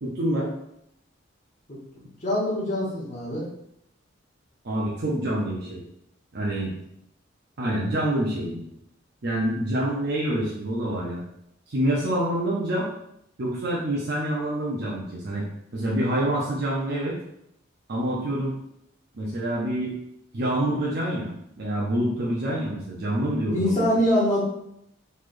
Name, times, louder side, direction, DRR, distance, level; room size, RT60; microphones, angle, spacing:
voice 1, 0.0-0.5 4.6-5.8 6.3-6.7 7.6-8.6 9.2-11.2 11.7-12.9 13.4-15.4 15.7-17.2 17.9-18.5 19.1-19.9 20.3-23.8, right 1 dB, 60° right, -5 dB, 0.6 m, -26 dB
voice 2, 2.2-3.4 23.5-24.4, equal, 35° left, -7 dB, 0.9 m, -24 dB
4.0 x 3.2 x 2.5 m, 0.76 s
head